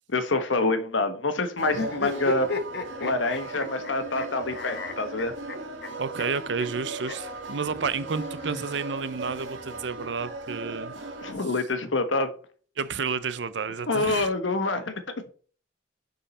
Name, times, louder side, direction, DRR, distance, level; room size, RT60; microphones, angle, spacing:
voice 1, 0.1-2.5 3.0-5.3 11.2-12.3 13.9-15.0, left 2 dB, 90° left, 1.1 m, -26 dB
sound 1, 1.6-11.3, right 2 dB, 90° right, 1.8 m, -38 dB
sound 2, 1.7-4.3 4.5-5.9 6.2-6.3 6.6-6.7 7.0-7.2 8.2-9.2, left 4 dB, 60° left, 1.0 m, -34 dB
voice 2, 6.0-10.9 12.8-14.3, right 5 dB, 70° right, 0.6 m, -31 dB
7.0 x 5.5 x 4.3 m
head